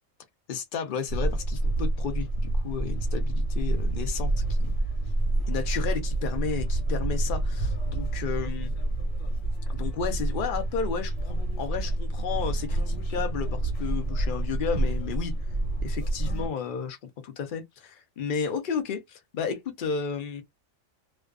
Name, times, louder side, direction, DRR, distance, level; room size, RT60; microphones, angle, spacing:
voice 1, 0.5-4.7 5.5-8.7 9.7-15.3 15.8-17.0 17.2-20.4, left 6 dB, 50° left, 0.7 m, -33 dB
sound 1, 1.1-16.5, right 2 dB, 80° left, 1.3 m, -28 dB
2.4 x 2.2 x 2.3 m
omnidirectional pair, 1.3 m